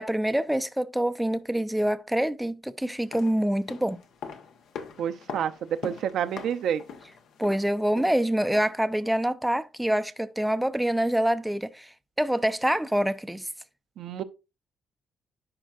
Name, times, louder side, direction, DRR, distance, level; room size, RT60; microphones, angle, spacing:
voice 1, 0.0-4.0 7.4-11.9 12.2-13.5, right 1 dB, 5° right, 0.5 m, -26 dB
sound 1, 2.9-8.9 9.2-9.3, left 6 dB, 75° left, 1.1 m, -43 dB
voice 2, 5.0-5.5 5.8-6.8 14.0-14.2, right 9 dB, 75° right, 0.6 m, -28 dB
10.5 x 4.5 x 2.5 m
cardioid pair, 90°, 0 cm